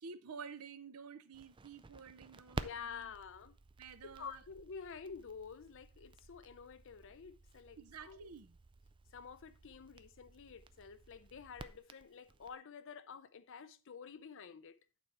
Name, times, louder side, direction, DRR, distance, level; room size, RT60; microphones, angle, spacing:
voice 1, 0.0-3.1 3.8-4.4 7.8-8.6, right 5 dB, 90° right, 0.7 m, -51 dB
Crackle, 1.3-12.5, right 3 dB, 20° right, 0.4 m, -52 dB
voice 2, 2.6-3.6 4.0-8.3 9.1-14.8, left 6 dB, 60° left, 0.5 m, -50 dB
8.8 x 4.3 x 4.6 m
head